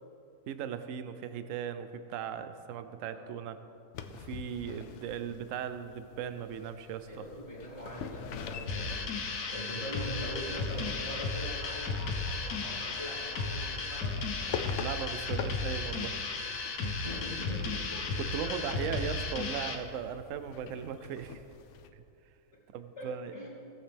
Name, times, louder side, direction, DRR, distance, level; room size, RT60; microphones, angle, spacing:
voice 1, 0.5-3.6 4.1-7.3 14.7-16.2 18.2-21.4 21.9-22.0 22.7-23.3, right 8 dB, 65° right, 10 dB, 0.9 m, -38 dB
sound 1, 3.9-21.9, left 7 dB, 65° left, 0.7 m, -46 dB
voice 2, 7.0-9.0 9.5-14.1 16.8-18.8 23.0-23.1 23.3-23.5, equal, 40° left, -9 dB, 2.5 m, -42 dB
sound 2, 8.7-19.8, left 4 dB, 85° left, 1.4 m, -34 dB
17.0 x 7.3 x 3.4 m, 2.6 s
omnidirectional pair, 1.6 m